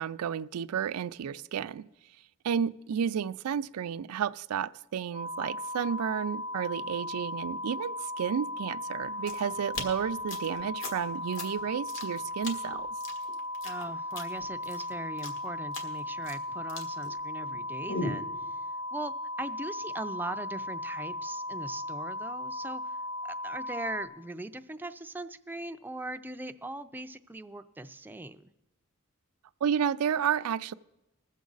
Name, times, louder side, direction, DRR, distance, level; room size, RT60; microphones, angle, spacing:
voice 1, 0.0-1.8 2.4-12.9 29.6-30.7, right 8 dB, 85° right, 0.4 m, -31 dB
sound 1, 5.1-24.1, left 1 dB, 85° left, 2.0 m, -37 dB
sound 2, 9.0-17.6 17.9-18.3, left 2 dB, 60° left, 1.6 m, -39 dB
voice 2, 13.6-18.6 18.9-19.1 19.4-23.0 23.2-28.5, right 2 dB, 10° right, 0.4 m, -40 dB
20.5 x 7.3 x 3.9 m
head